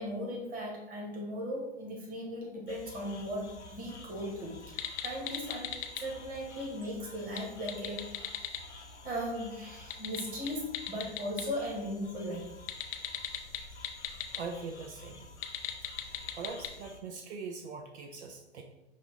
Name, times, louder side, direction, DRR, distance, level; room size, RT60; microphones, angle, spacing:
voice 1, 0.0-8.2 9.0-12.5, equal, 25° right, -2 dB, 1.6 m, -38 dB
sound 1, 2.7-17.0, left 3 dB, 90° left, 0.8 m, -51 dB
sound 2, 4.7-6.0 7.2-8.6 9.8-11.4 12.7-14.4 15.3-16.7, left 10 dB, 25° left, 0.3 m, -37 dB
voice 2, 14.3-15.3 16.4-18.6, right 4 dB, 75° right, 4 dB, 0.7 m, -41 dB
5.5 x 2.5 x 3.7 m, 0.93 s
hypercardioid pair, 110°, 34 cm